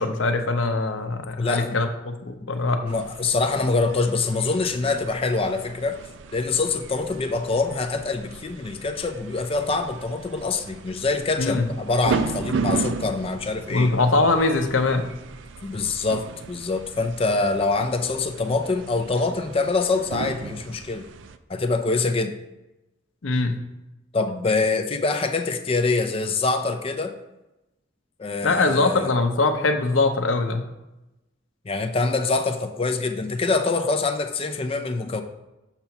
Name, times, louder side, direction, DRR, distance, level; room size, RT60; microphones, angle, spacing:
voice 1, 0.0-2.8 11.4-11.7 13.7-15.1 23.2-23.6 28.4-30.6, left 3 dB, 90° left, 6 dB, 0.7 m, -22 dB
voice 2, 1.4-1.8 2.8-6.0 6.3-13.9 15.6-21.1 21.5-22.3 24.1-27.1 28.2-29.1 31.6-35.2, left 3 dB, 30° left, 7 dB, 0.5 m, -25 dB
sound 1, 2.9-21.4, right 5 dB, 70° right, 0.4 m, -35 dB
6.8 x 2.9 x 5.7 m, 0.97 s
head